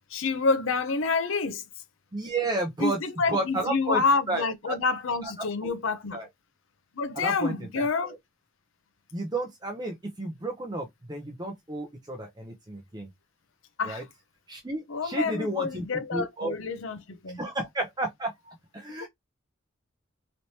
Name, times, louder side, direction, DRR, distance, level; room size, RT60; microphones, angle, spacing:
voice 1, 0.1-1.6 2.8-6.2 6.9-8.2 13.8-14.0 14.9-17.4 19.0-19.1, left 4 dB, 70° left, 0.6 m, -28 dB
voice 2, 2.1-3.0 3.3-4.0 4.3-4.8 5.2-5.3 5.6-5.7 6.1-6.3 7.2-8.2 9.1-13.1 13.8-14.0 14.5-15.8 16.1-16.5 17.4-19.1, right 2 dB, 20° right, 0.6 m, -32 dB
3.2 x 2.9 x 2.7 m
head